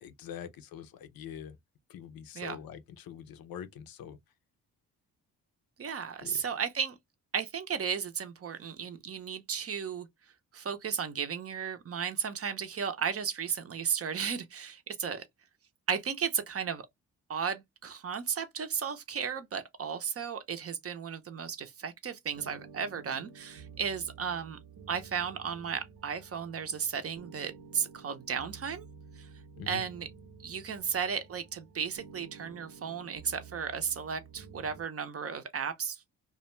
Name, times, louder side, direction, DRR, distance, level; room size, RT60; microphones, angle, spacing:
voice 1, 0.0-1.6 1.9-4.2 6.2-6.4 29.6-29.8, left 9 dB, 70° left, 0.6 m, -44 dB
voice 2, 5.8-7.0 7.3-10.1 10.5-15.2 15.9-16.9 17.3-24.6 24.9-28.9 29.2-29.3 29.7-30.1 30.4-36.0, right 7 dB, 40° right, 0.6 m, -34 dB
sound 1, 22.3-34.8, right 5 dB, 75° right, 0.7 m, -51 dB
2.3 x 2.2 x 3.0 m
cardioid pair, 65°, 36 cm